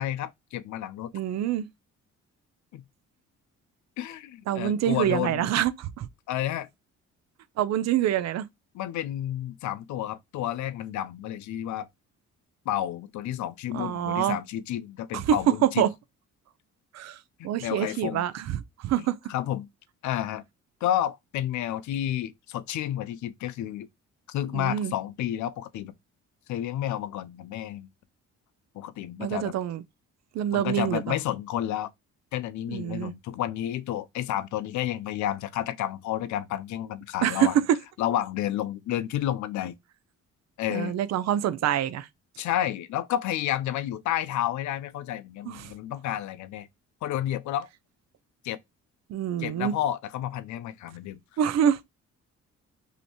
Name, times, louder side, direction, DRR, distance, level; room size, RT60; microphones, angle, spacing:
voice 1, 0.0-1.1 2.7-2.8 4.0-5.5 6.3-6.7 8.7-11.9 12.7-15.9 17.4-18.2 19.3-19.7 20.0-20.4 20.8-23.9 24.3-25.9 26.5-27.9 28.7-29.5 30.5-31.9 32.3-37.6 38.0-39.7 40.6-41.0 42.4-46.7 47.0-47.7 48.4-48.6 49.4-51.2, left 12 dB, 70° left, 0.5 m, -31 dB
voice 2, 1.1-1.7 4.5-6.1 7.6-8.5 13.7-14.4 15.1-15.4 15.6-15.9 16.9-17.2 17.4-19.2 24.5-24.9 29.2-29.8 30.3-31.2 32.7-33.1 37.2-37.6 40.7-42.1 45.5-45.7 49.1-49.7 51.4-51.8, right 10 dB, 60° right, 0.5 m, -26 dB
3.0 x 2.8 x 2.8 m
cardioid pair, 90°, 30 cm